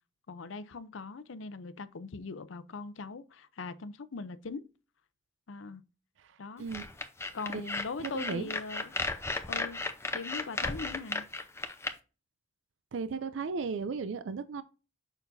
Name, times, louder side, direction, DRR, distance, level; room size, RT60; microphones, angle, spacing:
voice 1, 0.3-4.7 5.5-5.8 6.4-6.7 7.3-9.0 9.5-9.8 10.1-11.3, left 4 dB, 80° left, 0.6 m, -41 dB
voice 2, 6.2-6.9 7.5-7.7 8.0-8.5 12.9-14.6, right 5 dB, 70° right, 0.4 m, -36 dB
sound 1, 6.7-11.9, left 3 dB, 15° left, 0.6 m, -35 dB
6.8 x 5.8 x 2.6 m
head